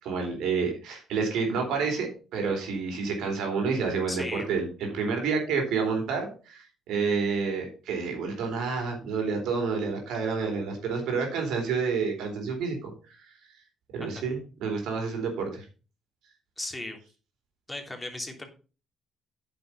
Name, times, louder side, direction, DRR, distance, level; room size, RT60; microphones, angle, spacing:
voice 1, 0.0-13.2 13.9-15.6, right 5 dB, 80° right, 2 dB, 3.9 m, -29 dB
voice 2, 4.1-4.5 14.0-14.3 16.6-17.0 17.7-18.4, left 1 dB, 15° left, 3 dB, 3.1 m, -36 dB
9.0 x 6.7 x 5.6 m, 0.35 s
supercardioid pair, 60°, 0 cm